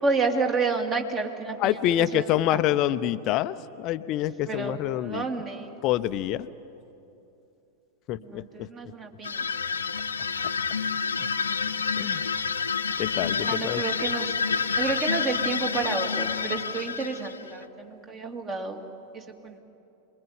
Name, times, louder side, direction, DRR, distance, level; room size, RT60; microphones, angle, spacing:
voice 1, 0.0-2.6 4.5-5.7 8.3-9.3 13.4-14.3 14.8-18.8 19.4-19.6, right 4 dB, 25° right, 4 dB, 2.7 m, -30 dB
voice 2, 1.6-5.4 5.8-6.5 8.1-8.7 12.0-12.2 13.0-13.8, left 12 dB, 40° left, 13 dB, 0.6 m, -26 dB
sound 1, 9.2-17.6, left 6 dB, 70° left, 0.8 m, -28 dB
27.5 x 22.0 x 9.6 m, 2.8 s
figure-of-eight pair, 90°, 0 cm